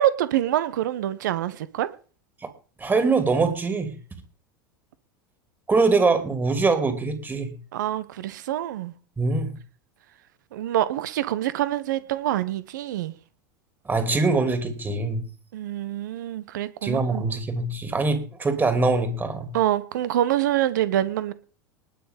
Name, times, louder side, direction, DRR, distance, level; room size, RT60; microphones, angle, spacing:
voice 1, 0.0-1.9 7.7-8.9 10.5-13.1 15.5-17.2 19.5-21.3, right 12 dB, 65° right, 1.2 m, -25 dB
voice 2, 2.8-3.9 5.7-7.6 9.2-9.6 13.9-15.2 16.8-19.5, right 3 dB, 20° right, 2.8 m, -23 dB
19.5 x 6.6 x 5.3 m
figure-of-eight pair, 80°, 11 cm